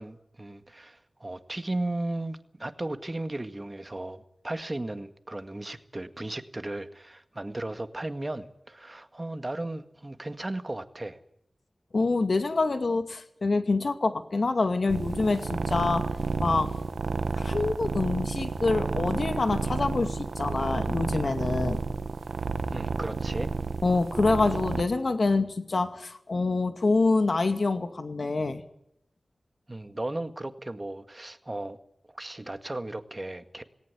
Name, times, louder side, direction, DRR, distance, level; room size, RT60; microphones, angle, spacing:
voice 1, 0.0-11.2 22.7-23.5 29.7-31.8 32.1-33.6, right 2 dB, 30° right, 9 dB, 1.9 m, -35 dB
voice 2, 11.9-16.1 16.4-16.7 17.3-21.8 23.8-28.6, left 3 dB, 65° left, 8 dB, 2.3 m, -26 dB
sound 1, 14.9-24.8, right 4 dB, 90° right, 1.1 m, -31 dB
18.5 x 18.0 x 9.6 m, 0.76 s
wide cardioid pair, 55°, 0 cm